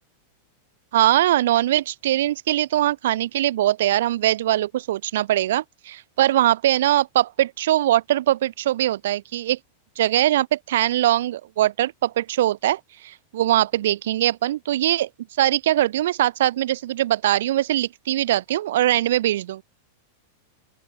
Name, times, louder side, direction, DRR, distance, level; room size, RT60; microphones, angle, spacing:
voice 1, 0.9-9.6 10.0-15.1 15.4-19.6, right 13 dB, 70° right, 0.5 m, -21 dB
open air
hypercardioid pair, 100°, 0 cm